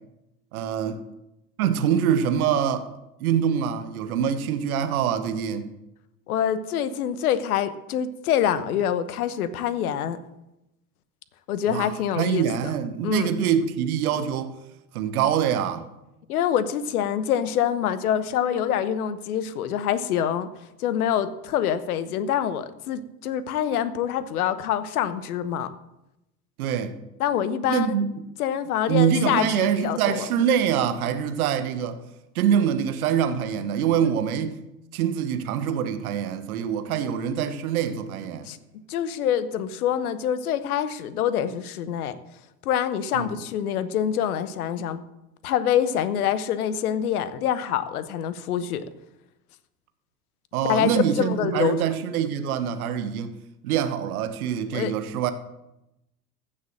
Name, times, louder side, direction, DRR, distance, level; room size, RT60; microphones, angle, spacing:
voice 1, 0.5-1.0 1.6-2.9 3.2-5.7 11.7-14.6 14.9-15.9 26.6-26.9 27.7-28.1 28.9-32.0 32.3-34.6 34.9-38.5 43.1-43.3 50.5-53.3 53.6-55.3, right 8 dB, 70° right, 1.2 m, -24 dB
voice 2, 6.3-10.2 11.5-12.5 13.0-13.3 16.3-20.5 20.8-25.7 27.2-28.0 28.4-30.3 34.0-34.1 38.4-38.6 38.9-42.1 42.6-45.0 45.4-48.8 50.6-51.8 54.7-54.9, left 9 dB, 70° left, 1.1 m, -25 dB
14.5 x 6.8 x 7.5 m
figure-of-eight pair, 75°, 45 cm